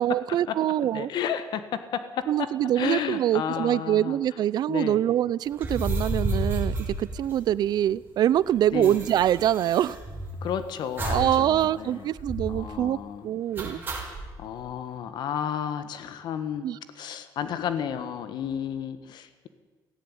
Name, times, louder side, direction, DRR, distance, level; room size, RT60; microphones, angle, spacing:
voice 1, 0.0-1.1 2.3-10.0 11.1-13.0 13.2-13.8 16.6-16.8, right 11 dB, 65° right, 20 dB, 0.6 m, -24 dB
voice 2, 0.8-2.5 2.8-4.2 4.7-5.0 8.7-9.0 10.4-12.1 12.5-13.3 14.4-16.7 16.9-19.5, left 8 dB, 70° left, 11 dB, 1.5 m, -32 dB
sound 1, 5.5-7.8 8.1-8.2 8.4-10.5 11.0-11.4 11.7-11.8 12.2-12.6 13.6-14.3, right 1 dB, 25° right, 5.7 m, -31 dB
17.5 x 16.5 x 9.9 m, 1.4 s
cardioid pair, 135°, 8 cm